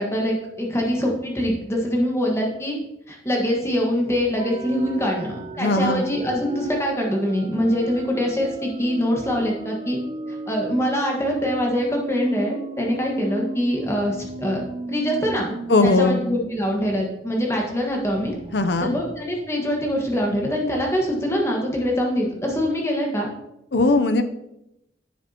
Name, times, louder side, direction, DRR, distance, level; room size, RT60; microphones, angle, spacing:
voice 1, 0.0-2.8 3.1-10.0 10.3-15.5 15.8-18.3 18.8-23.3, equal, 15° left, -1 dB, 1.5 m, -24 dB
sound 1, 4.4-16.8 17.2-17.3 17.6-20.3, right 2 dB, 30° right, 0.5 m, -36 dB
voice 2, 5.6-6.0 15.7-16.2 18.5-18.9 23.7-24.2, left 2 dB, 70° left, 9 dB, 0.7 m, -19 dB
10.5 x 7.2 x 2.9 m, 0.86 s
head